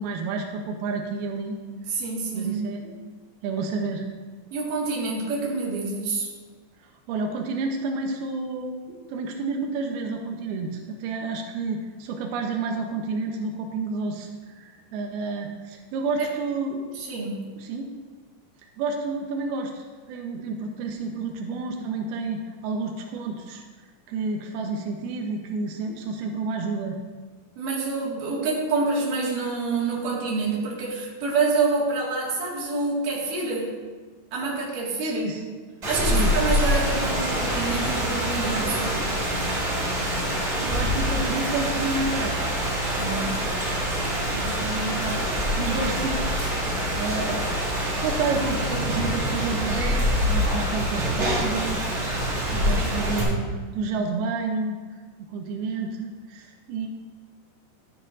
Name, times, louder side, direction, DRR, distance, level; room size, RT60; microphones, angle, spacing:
voice 1, 0.0-1.6 2.3-3.0 3.4-4.1 6.8-16.9 17.6-17.9 18.8-23.6 24.1-27.0 35.0-35.5 36.0-36.3 40.6-42.5 44.3-46.6 47.0-47.5 48.0-51.9 52.5-54.8 55.3-56.9, right 3 dB, 85° right, 2 dB, 2.2 m, -30 dB
voice 2, 2.0-2.6 4.5-6.3 17.1-17.5 27.6-33.7 34.3-35.4 35.8-39.0 43.0-43.5 44.3-44.6 52.5-52.9, right 3 dB, 55° right, -4 dB, 3.0 m, -27 dB
Rain, 35.8-53.2, equal, 25° right, 2.8 m, -25 dB
12.5 x 9.6 x 2.6 m, 1.4 s
omnidirectional pair, 5.5 m